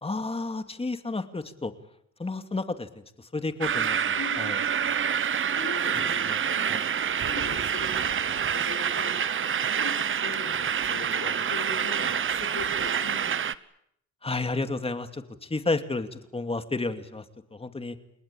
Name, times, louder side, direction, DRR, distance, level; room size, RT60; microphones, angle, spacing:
voice 1, 0.0-1.7 2.2-2.9 3.2-4.6 6.2-6.4 6.7-6.9 14.2-17.2 17.5-18.0, left 3 dB, 20° left, 9 dB, 2.6 m, -31 dB
sound 1, 3.6-13.5, right 8 dB, 45° right, 1.1 m, -27 dB
voice 2, 4.2-4.5 5.5-6.7 7.2-9.2 9.8-13.3, left 5 dB, 80° left, 2 dB, 7.6 m, -40 dB
30.0 x 19.0 x 8.8 m, 0.74 s
cardioid pair, 90°, 30 cm